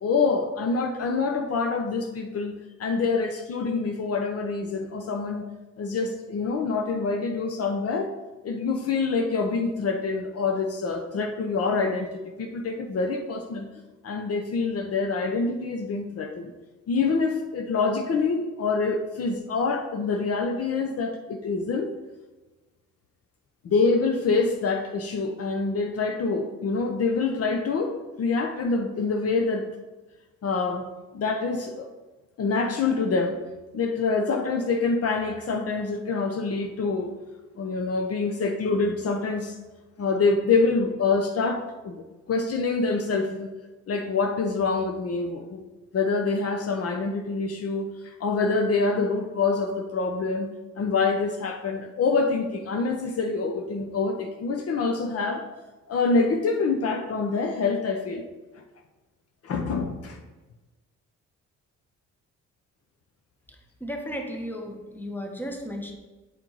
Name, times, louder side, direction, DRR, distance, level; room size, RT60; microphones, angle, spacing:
voice 1, 0.0-2.5 2.8-5.4 5.8-8.1 8.4-13.7 14.0-16.5 16.9-21.9 23.6-29.7 30.4-30.9 31.1-31.9 32.4-33.4 33.7-37.1 37.6-39.6 40.0-43.5 43.9-45.6 45.9-50.5 50.8-55.4 55.9-58.2 59.4-60.2, left 4 dB, 50° left, 4 dB, 0.7 m, -26 dB
voice 2, 63.8-65.9, equal, 5° left, 3 dB, 1.1 m, -34 dB
8.3 x 4.5 x 3.9 m, 1.2 s
cardioid pair, 90°, 30 cm